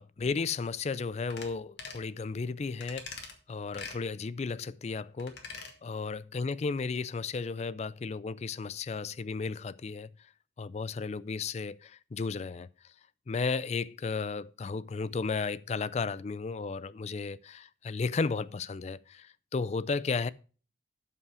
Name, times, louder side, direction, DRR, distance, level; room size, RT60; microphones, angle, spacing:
voice 1, 0.0-5.4 5.8-10.1 10.6-12.7 13.3-20.3, left 4 dB, 40° left, 0.4 m, -34 dB
sound 1, 1.3-1.5 1.8-2.1 2.8-3.3 3.7-4.0 5.2-5.7 6.1-6.2, left 5 dB, 70° left, 1.8 m, -43 dB
12.0 x 5.7 x 4.9 m
head